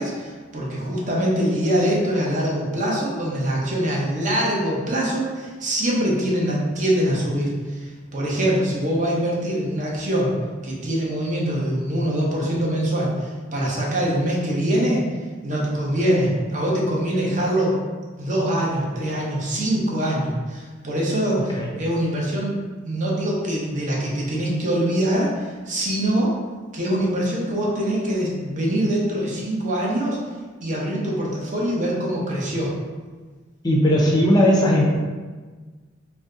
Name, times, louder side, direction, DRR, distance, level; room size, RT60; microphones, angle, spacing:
voice 1, 0.0-10.3 10.6-15.0 15.4-17.8 18.2-26.4 26.7-30.2 30.6-32.7, right 1 dB, 40° right, -4 dB, 0.7 m, -23 dB
voice 2, 33.6-34.8, equal, 20° left, -3 dB, 0.5 m, -17 dB
2.6 x 2.2 x 3.7 m, 1.4 s
head